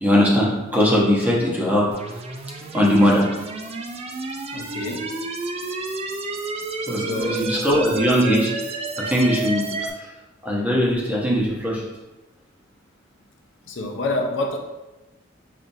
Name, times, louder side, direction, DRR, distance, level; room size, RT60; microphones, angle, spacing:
voice 1, 0.0-1.9 2.7-3.2 6.9-8.5 9.0-9.6 10.4-11.8, equal, 10° right, -5 dB, 0.8 m, -19 dB
sound 1, 1.9-9.9, right 3 dB, 30° right, 0.3 m, -30 dB
voice 2, 4.5-5.2 7.0-7.6 13.7-14.6, left 2 dB, 65° left, 2 dB, 0.5 m, -28 dB
5.4 x 2.5 x 2.6 m, 1.1 s
head